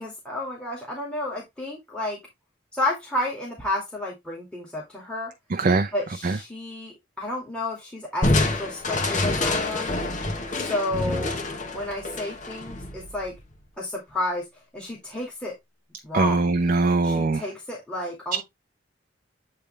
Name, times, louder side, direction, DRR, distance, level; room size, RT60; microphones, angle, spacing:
voice 1, 0.0-2.2 2.7-5.3 5.9-10.0 10.5-11.4 11.7-13.3 13.8-14.5 14.7-15.5 16.0-16.6 17.0-18.4, left 1 dB, 5° left, 2.2 m, -31 dB
voice 2, 5.5-5.9 6.2-6.4 16.1-17.4, right 3 dB, 45° right, 0.5 m, -21 dB
Crushing, 8.2-13.6, left 2 dB, 40° left, 1.3 m, -27 dB
8.8 x 3.4 x 3.2 m
head